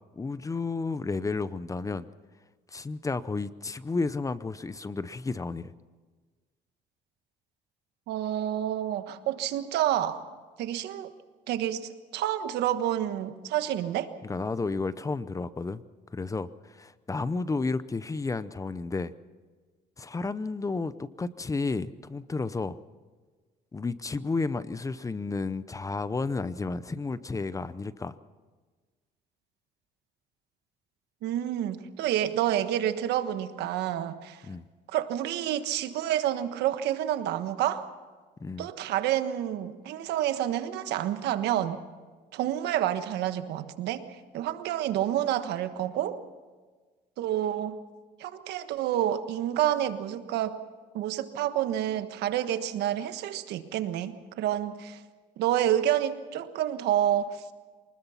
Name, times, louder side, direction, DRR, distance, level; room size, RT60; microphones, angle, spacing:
voice 1, 0.1-2.1 2.7-5.7 14.2-15.8 16.1-19.1 20.0-22.8 23.7-28.2 34.5-34.6 38.4-38.7, left 3 dB, 20° left, 16 dB, 0.7 m, -32 dB
voice 2, 8.1-10.2 10.6-11.1 11.5-14.1 31.2-34.4 34.9-37.8 38.6-41.8 42.3-44.0 44.3-46.2 47.2-47.8 48.2-50.6 50.9-55.0 55.4-57.4, right 11 dB, 80° right, 10 dB, 1.4 m, -29 dB
24.5 x 20.0 x 5.8 m, 1.4 s
cardioid pair, 110°, 17 cm